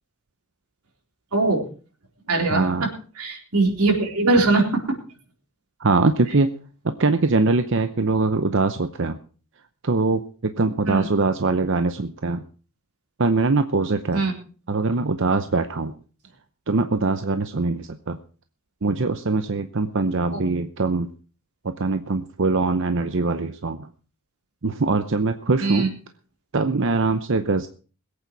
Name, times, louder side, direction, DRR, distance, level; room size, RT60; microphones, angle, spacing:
voice 1, 1.3-1.6 2.3-2.9 3.2-5.0 10.9-11.1 14.1-14.3 20.3-20.4 25.6-25.9, right 3 dB, 90° right, 1 dB, 4.0 m, -21 dB
voice 2, 2.5-2.9 5.8-6.5 7.0-9.2 9.8-12.4 13.2-14.2 14.7-15.9 16.7-18.2 18.8-21.1 21.6-23.9 24.6-25.9 26.5-27.7, right 3 dB, 60° right, 9 dB, 0.8 m, -22 dB
21.5 x 8.8 x 4.7 m, 0.38 s
head